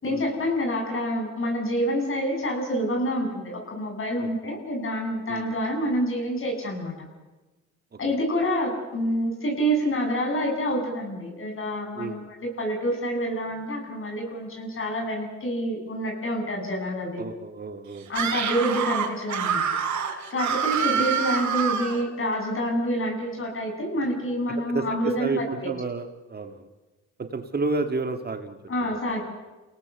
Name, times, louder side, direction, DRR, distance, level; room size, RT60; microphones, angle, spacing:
voice 1, 0.0-6.9 8.0-17.2 18.1-19.7 20.3-25.7 28.7-29.2, equal, 45° left, 2 dB, 7.8 m, -27 dB
voice 2, 11.9-12.3 17.2-18.3 20.9-21.0 24.5-26.7 27.2-29.2, right 3 dB, 30° right, 7 dB, 1.9 m, -32 dB
Screaming, 18.1-22.0, right 7 dB, 70° right, 3.6 m, -26 dB
30.0 x 18.0 x 7.1 m, 1.2 s
cardioid pair, 90°, 30 cm